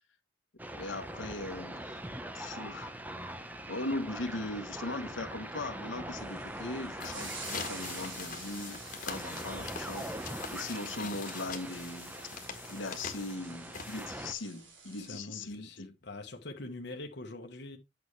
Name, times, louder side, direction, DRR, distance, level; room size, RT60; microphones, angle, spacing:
sound 1, 0.6-14.3, right 1 dB, 10° right, 0.7 m, -43 dB
voice 1, 0.8-1.9 2.3-2.9 3.7-10.0 10.5-12.1 12.7-15.9, left 2 dB, 75° left, 1.2 m, -39 dB
sound 2, 6.2-15.2, right 4 dB, 75° right, 3.0 m, -49 dB
sound 3, 6.8-14.4, left 6 dB, 40° left, 1.5 m, -43 dB
voice 2, 15.0-17.8, left 2 dB, 60° left, 1.1 m, -44 dB
8.6 x 5.9 x 3.2 m
head